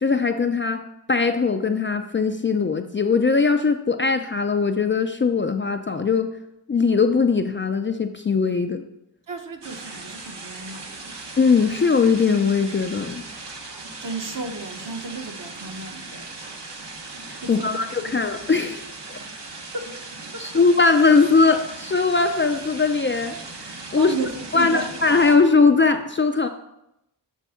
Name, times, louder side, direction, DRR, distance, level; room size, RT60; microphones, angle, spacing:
voice 1, 0.0-6.3 6.7-8.8 11.4-13.3 17.5-18.8 19.1-19.2 20.4-23.4 23.6-24.2 24.5-26.5, left 4 dB, 30° left, 6 dB, 0.4 m, -20 dB
voice 2, 9.3-11.2 14.0-16.3 17.4-18.3 19.1-19.3 19.7-19.9 20.3-20.5 24.0-24.9, right 4 dB, 45° right, 4 dB, 1.0 m, -34 dB
sound 1, 9.6-25.4, right 3 dB, 65° right, 1.2 m, -38 dB
7.2 x 3.3 x 5.6 m, 0.85 s
cardioid pair, 55°, 44 cm